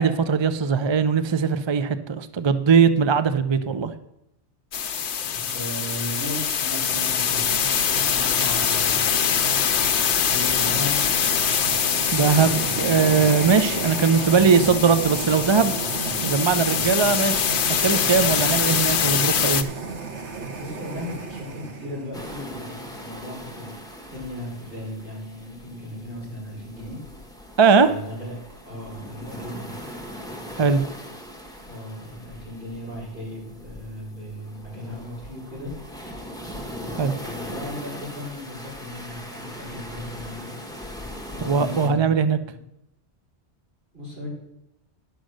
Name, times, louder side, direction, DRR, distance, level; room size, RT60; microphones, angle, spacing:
voice 1, 0.0-4.0 12.1-15.8 16.2-17.5 17.8-19.7 27.6-27.9 30.6-30.8 37.0-37.1 41.5-42.4, right 5 dB, 40° right, 11 dB, 0.4 m, -20 dB
sound 1, 4.7-19.6, left 8 dB, 75° left, 1.0 m, -24 dB
voice 2, 5.2-7.6 8.0-9.2 10.3-10.9 20.6-23.8 24.1-27.0 27.8-28.4 28.6-29.8 31.6-35.7 36.8-40.5 41.3-42.1 42.5-42.6 43.9-44.3, left 1 dB, 60° right, -6 dB, 5.8 m, -36 dB
sound 2, 6.8-22.2, right 4 dB, 85° right, 1.6 m, -33 dB
sound 3, 22.1-41.9, equal, 5° left, 1.4 m, -40 dB
11.0 x 6.3 x 6.4 m, 0.83 s
omnidirectional pair, 1.2 m